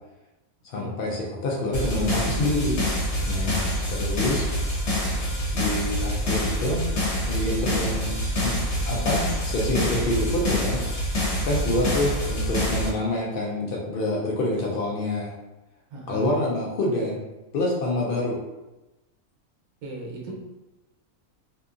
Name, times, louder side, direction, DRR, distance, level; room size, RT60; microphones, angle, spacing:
voice 1, 0.6-2.8 3.3-4.5 5.5-6.8 7.3-8.6 8.8-10.8 11.4-15.3 16.1-17.2 17.5-18.4, left 1 dB, 85° left, -3 dB, 0.4 m, -27 dB
sound 1, 1.7-12.9, equal, 55° left, 1.1 m, -26 dB
voice 2, 7.6-8.0 15.9-16.4 19.8-20.3, right 2 dB, 70° right, -3 dB, 1.1 m, -38 dB
2.7 x 2.5 x 2.4 m, 1.0 s
omnidirectional pair, 1.5 m